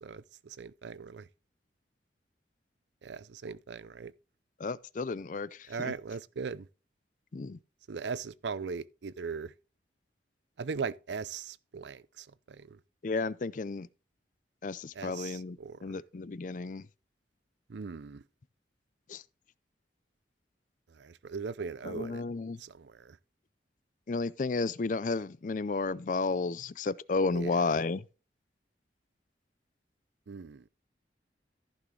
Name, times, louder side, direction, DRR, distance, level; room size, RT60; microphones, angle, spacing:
voice 1, 0.0-1.3 3.0-4.1 5.7-6.7 7.9-9.5 10.6-12.8 14.9-16.0 17.7-18.2 20.9-22.2 22.6-23.2 27.3-27.8 30.3-30.7, right 5 dB, 75° right, 0.5 m, -39 dB
voice 2, 4.6-5.9 7.3-7.6 13.0-13.9 14.6-15.6 15.8-16.9 19.1-19.2 21.8-22.6 24.1-28.0, left 3 dB, 45° left, 0.4 m, -32 dB
14.5 x 6.1 x 3.2 m
head